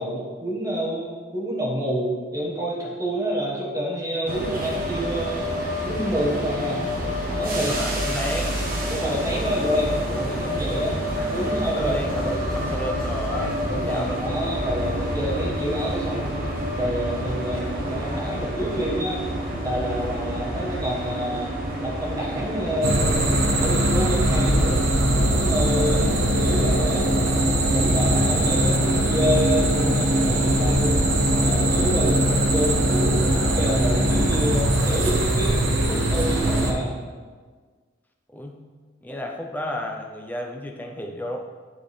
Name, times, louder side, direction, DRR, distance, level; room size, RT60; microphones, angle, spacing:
voice 1, 0.0-5.5 5.8-6.8 7.4-7.7 8.9-11.0 11.3-11.9 12.2-12.4 13.7-16.4 16.8-19.2 19.6-21.5 21.8-23.2 23.6-24.8 25.2-27.1 27.7-31.1 31.4-32.2 32.5-36.9, equal, 15° right, -4 dB, 1.3 m, -28 dB
sound 1, 4.3-23.4, equal, 45° right, 1.0 m, -28 dB
voice 2, 7.5-8.5 8.8-8.9 11.7-14.9 38.3-38.6 39.0-41.4, left 1 dB, 10° left, 1 dB, 0.6 m, -33 dB
sound 2, 22.8-36.7, right 1 dB, 85° right, 0.9 m, -21 dB
9.9 x 3.7 x 3.3 m, 1.5 s
head